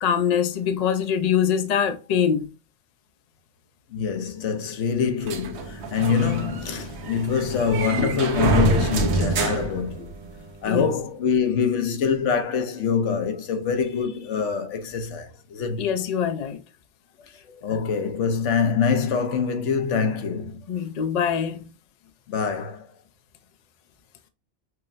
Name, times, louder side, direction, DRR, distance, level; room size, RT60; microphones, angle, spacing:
voice 1, 0.0-2.5 10.7-10.9 15.8-16.6 20.7-21.6, left 8 dB, 50° left, 0.5 m, -23 dB
voice 2, 3.9-10.1 10.6-15.9 17.6-20.6 22.3-22.9, left 6 dB, 80° left, 1.0 m, -24 dB
sound 1, 5.3-10.5, right 4 dB, 70° right, 1.0 m, -27 dB
6.0 x 2.0 x 2.5 m
omnidirectional pair, 1.2 m